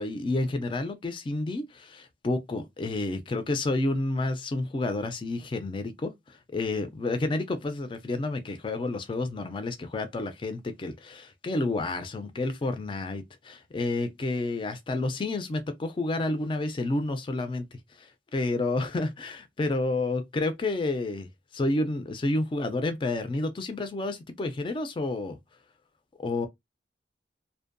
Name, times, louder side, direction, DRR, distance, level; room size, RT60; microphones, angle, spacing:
voice 1, 0.0-21.3 21.5-25.4 26.2-26.5, left 2 dB, 30° left, 0.3 m, -30 dB
2.5 x 2.1 x 2.5 m
head